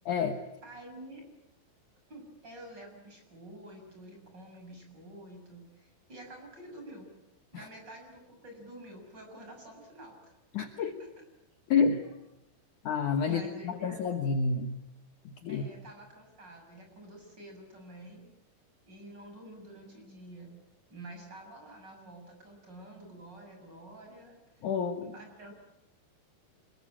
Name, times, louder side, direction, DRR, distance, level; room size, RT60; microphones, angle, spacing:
voice 1, 0.1-0.4 7.5-7.7 10.5-11.0 11.7-12.0 12.8-14.8 15.4-15.6 24.6-25.1, left 5 dB, 75° left, 6 dB, 1.8 m, -29 dB
voice 2, 0.6-1.2 2.1-7.1 7.5-10.4 10.8-11.1 13.3-14.1 15.5-18.3 18.9-20.5 20.9-24.7 25.0-25.5, right 1 dB, 20° right, 3 dB, 6.9 m, -49 dB
26.0 x 22.5 x 8.7 m, 0.86 s
omnidirectional pair, 5.5 m